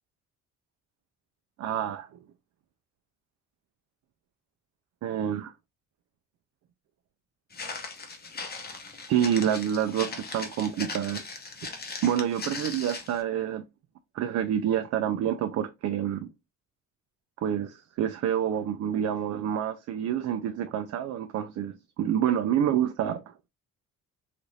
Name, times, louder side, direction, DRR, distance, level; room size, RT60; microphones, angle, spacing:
voice 1, 1.6-2.1 5.0-5.5 9.1-11.2 12.0-13.6 14.1-16.3 17.4-23.3, right 9 dB, 60° right, 0.4 m, -28 dB
Walk footsteps, 7.5-13.2, left 4 dB, 30° left, 0.7 m, -39 dB
2.6 x 2.5 x 3.0 m
cardioid pair, 90°, 30 cm